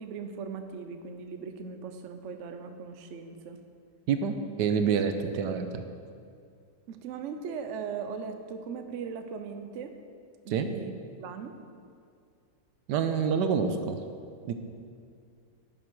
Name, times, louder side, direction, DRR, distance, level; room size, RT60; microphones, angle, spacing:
voice 1, 0.0-3.6 5.0-5.1 6.9-9.9 10.4-10.9 11.2-11.5, right 6 dB, 60° right, 7 dB, 0.8 m, -39 dB
voice 2, 4.1-5.8 10.5-10.7 12.9-14.0 14.4-14.5, right 6 dB, 85° right, 8 dB, 1.3 m, -27 dB
11.0 x 8.0 x 4.7 m, 2.3 s
omnidirectional pair, 1.8 m